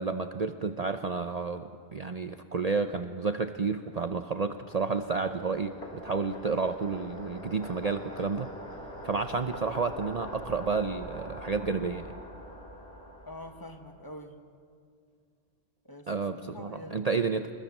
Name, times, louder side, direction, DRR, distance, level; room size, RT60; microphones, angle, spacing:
voice 1, 0.0-8.5 9.0-12.1 16.1-17.5, right 4 dB, 40° right, 8 dB, 0.7 m, -31 dB
sound 1, 3.5-14.1, equal, 65° left, 3.5 m, -44 dB
voice 2, 13.2-14.4 15.8-17.3, left 1 dB, 20° left, 5 dB, 1.6 m, -45 dB
25.5 x 21.0 x 7.3 m, 2.2 s
omnidirectional pair, 1.1 m